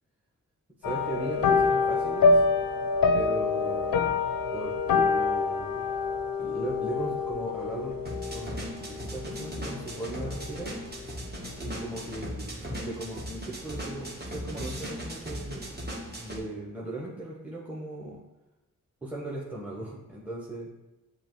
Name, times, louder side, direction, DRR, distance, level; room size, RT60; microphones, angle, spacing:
sound 1, 0.8-10.4 10.7-11.1 11.4-11.5, left 4 dB, 75° left, 0.5 m, -26 dB
voice 1, 0.8-2.4 3.1-4.0 4.5-5.8 6.4-8.0 8.3-10.8 11.6-15.8 16.2-18.2 19.0-20.7, right 2 dB, 5° right, -5 dB, 1.0 m, -38 dB
sound 2, 8.1-16.4, equal, 30° right, 1.2 m, -38 dB
6.7 x 2.5 x 3.1 m, 0.99 s
cardioid pair, 40°, 34 cm